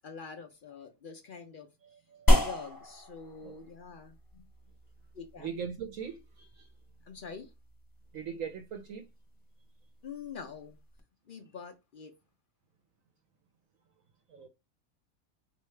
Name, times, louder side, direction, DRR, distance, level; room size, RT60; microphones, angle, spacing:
voice 1, 0.0-1.7 2.4-4.4 5.1-5.5 7.0-7.5 10.0-10.8 11.3-12.1, left 6 dB, 60° left, 0.5 m, -45 dB
sound 1, 2.3-11.0, equal, 20° left, 0.7 m, -33 dB
voice 2, 5.4-6.7 8.1-9.1 14.3-14.5, right 7 dB, 70° right, 1.0 m, -40 dB
4.5 x 2.8 x 3.1 m
omnidirectional pair, 1.5 m